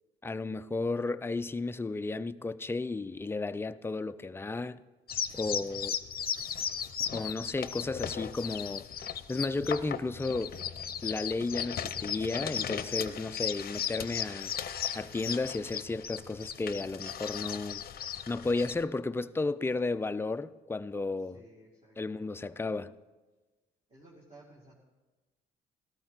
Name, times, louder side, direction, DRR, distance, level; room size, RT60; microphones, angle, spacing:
voice 1, 0.2-4.8 5.3-6.0 7.1-8.9 9.3-10.6 11.0-14.6 14.9-17.8 18.3-21.4 22.0-22.9, left 3 dB, 10° left, 0.4 m, -33 dB
sound 1, 5.1-18.8, left 8 dB, 50° left, 0.7 m, -36 dB
voice 2, 5.3-5.8 19.6-19.7 21.2-22.2 23.9-24.7, right 1 dB, 30° right, 2.3 m, -57 dB
13.5 x 13.0 x 4.0 m
cardioid pair, 90°, 20 cm